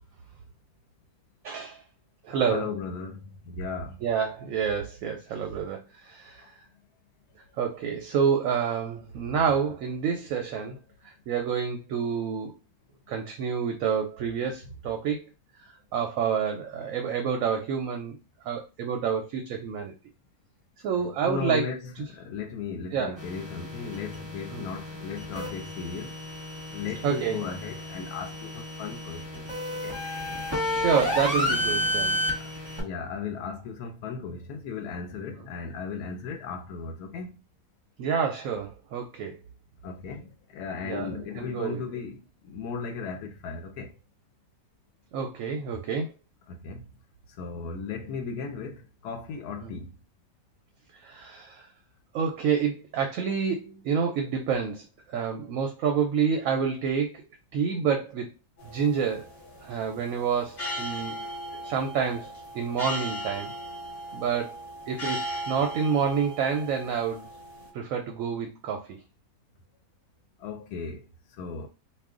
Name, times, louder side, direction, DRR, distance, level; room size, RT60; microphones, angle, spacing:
voice 1, 1.4-1.8 2.2-2.7 4.0-6.6 7.6-10.8 11.0-12.5 13.1-15.2 15.6-20.0 20.8-22.0 22.9-23.2 24.5-24.7 27.0-27.4 30.6-32.2 38.0-39.4 40.8-42.0 45.1-46.1 49.6-49.7 50.9-51.7 52.1-57.2 57.5-58.3 58.6-59.3 59.6-63.5 64.1-67.3 67.7-69.0, right 7 dB, 70° right, 0.9 m, -28 dB
voice 2, 2.5-4.0 6.4-6.5 21.2-21.8 22.1-26.2 26.7-29.5 29.7-30.0 32.4-32.5 32.8-37.4 39.8-43.9 46.5-46.8 47.4-49.9 70.4-71.0 71.4-71.7, left 5 dB, 85° left, 1.1 m, -36 dB
sound 1, 23.2-32.8, equal, 20° right, 1.1 m, -31 dB
sound 2, 58.6-67.7, equal, 40° left, 1.2 m, -38 dB
2.5 x 2.4 x 3.6 m
omnidirectional pair, 1.6 m